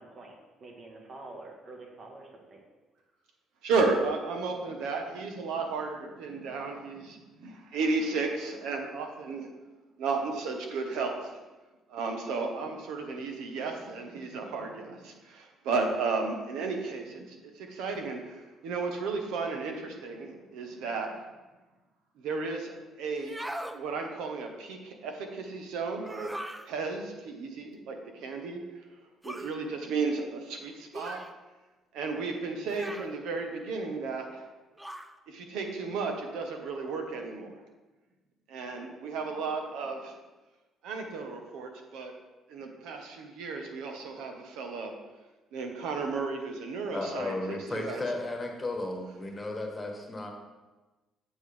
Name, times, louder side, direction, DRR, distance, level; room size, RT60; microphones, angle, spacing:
voice 1, 0.0-2.6, right 2 dB, 40° right, 1 dB, 1.4 m, -47 dB
voice 2, 3.6-9.5 10.0-11.4 11.9-21.2 22.2-23.4 23.7-26.3 26.6-28.8 29.2-31.2 31.9-34.5 35.3-37.6 38.5-40.2 40.8-42.1 42.5-44.9 45.5-48.1, right 4 dB, 90° right, 4 dB, 1.1 m, -33 dB
sound 1, 23.2-23.8 26.0-26.7 29.2-29.6 30.9-31.3 32.7-33.2 34.8-35.1, right 1 dB, 5° right, 0.4 m, -39 dB
voice 3, 46.9-50.3, left 2 dB, 15° left, 2 dB, 1.2 m, -34 dB
7.7 x 7.3 x 3.4 m, 1.2 s
cardioid pair, 130°, 0 cm